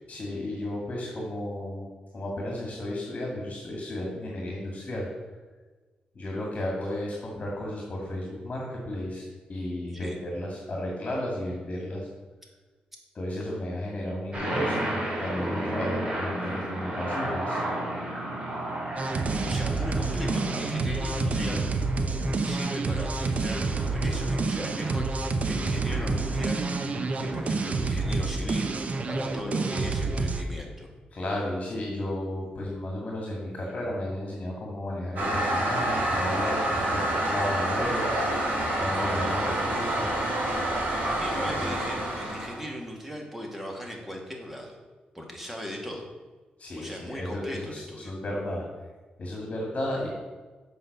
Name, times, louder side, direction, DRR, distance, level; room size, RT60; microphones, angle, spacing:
voice 1, 0.1-1.9 2.1-5.1 6.1-12.1 13.1-17.6 31.1-38.2 38.8-40.3 41.6-41.8 46.6-48.6 49.2-50.1, left 1 dB, 40° left, -2 dB, 2.2 m, -33 dB
sound 1, 14.3-28.0, right 1 dB, 30° right, 3.1 m, -34 dB
sound 2, 19.0-30.4, right 3 dB, 50° right, 0.8 m, -28 dB
voice 2, 19.4-21.7 22.4-26.7 27.2-30.9 41.1-44.8 45.1-46.1 46.7-48.1, equal, 5° right, 0 dB, 1.9 m, -38 dB
Toilet flush, 35.2-42.6, right 1 dB, 70° right, 2.6 m, -27 dB
7.8 x 5.6 x 6.6 m, 1.3 s
cardioid pair, 105°, 3 cm